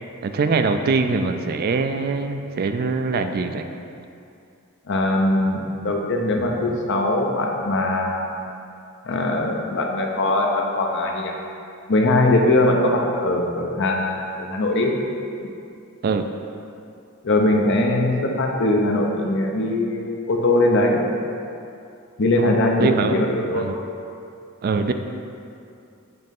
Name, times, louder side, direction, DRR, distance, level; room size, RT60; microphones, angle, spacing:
voice 1, 0.2-3.6 16.0-16.3 22.4-22.5 22.8-23.8 24.6-24.9, right 4 dB, 45° right, 7 dB, 0.3 m, -23 dB
voice 2, 4.9-8.3 9.0-11.3 11.9-14.9 17.2-21.0 22.2-23.8, left 2 dB, 60° left, 1 dB, 0.7 m, -21 dB
7.7 x 3.1 x 5.3 m, 2.6 s
head